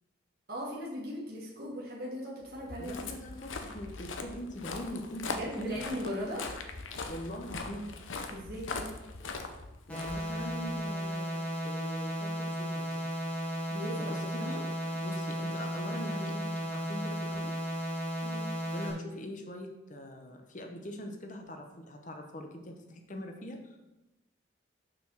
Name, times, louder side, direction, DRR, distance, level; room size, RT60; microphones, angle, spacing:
voice 1, 0.5-3.0 5.3-6.5 8.3-8.9 13.7-14.6 18.2-18.6, equal, 50° right, -4 dB, 1.6 m, -38 dB
Walk footsteps, 2.5-10.8, left 3 dB, 85° left, 0.8 m, -41 dB
voice 2, 2.8-5.8 7.1-7.9 9.9-13.1 14.0-14.6 14.9-17.5 18.7-23.8, left 1 dB, 40° left, 4 dB, 0.9 m, -42 dB
sound 1, 9.9-18.9, equal, 5° left, 1.7 m, -35 dB
6.3 x 4.7 x 6.2 m, 0.98 s
head